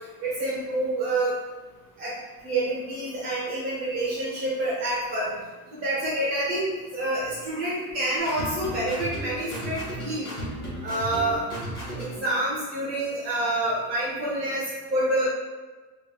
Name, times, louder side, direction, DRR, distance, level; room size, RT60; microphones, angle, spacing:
voice 1, 0.2-1.4 2.0-2.1 2.4-5.3 5.7-10.3 10.8-11.4 12.0-15.3, right 1 dB, 30° right, -7 dB, 0.9 m, -27 dB
sound 1, 8.2-12.3, equal, 10° left, 0.9 m, -35 dB
3.5 x 2.2 x 2.3 m, 1.3 s
cardioid pair, 165°, 44 cm